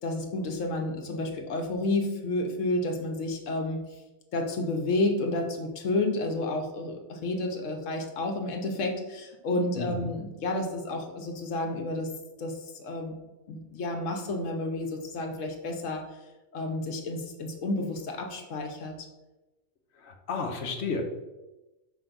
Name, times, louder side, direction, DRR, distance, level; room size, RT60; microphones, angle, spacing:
voice 1, 0.0-3.8 4.3-12.1 12.4-13.1 13.5-16.1 16.5-19.1, left 2 dB, 80° left, 3 dB, 1.2 m, -30 dB
voice 2, 9.8-10.1 20.0-21.0, left 4 dB, 60° left, 4 dB, 1.1 m, -32 dB
5.5 x 3.9 x 4.4 m, 1.1 s
omnidirectional pair, 1.3 m